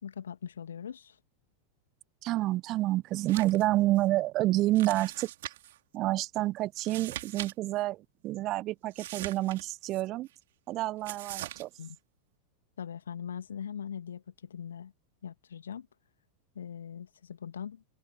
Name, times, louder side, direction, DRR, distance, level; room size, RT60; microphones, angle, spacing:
voice 1, 0.0-1.2 11.8-12.0 12.8-14.9 15.2-15.9 16.5-17.8, left 8 dB, 65° left, 2.4 m, -41 dB
voice 2, 2.2-5.5 5.9-10.3 10.7-11.7, right 16 dB, 35° right, 1.4 m, -29 dB
sound 1, 3.2-3.7 4.0-4.1 4.7-5.8 6.7-7.5 7.8-7.9 8.9-10.0 11.0-11.6, right 15 dB, 55° right, 2.8 m, -41 dB
figure-of-eight pair, 90°, 0 cm